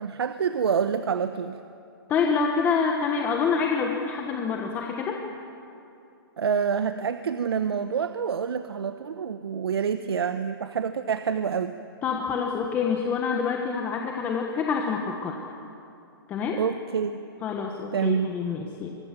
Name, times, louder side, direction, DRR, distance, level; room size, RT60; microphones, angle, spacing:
voice 1, 0.0-1.6 6.4-11.8 16.5-17.2 17.9-18.3, right 7 dB, 85° right, 10 dB, 1.0 m, -27 dB
voice 2, 2.1-5.2 12.0-15.3 16.3-16.6 17.4-18.9, left 5 dB, 15° left, 1 dB, 1.2 m, -26 dB
23.5 x 23.0 x 7.5 m, 2.7 s
hypercardioid pair, 165°, 13 cm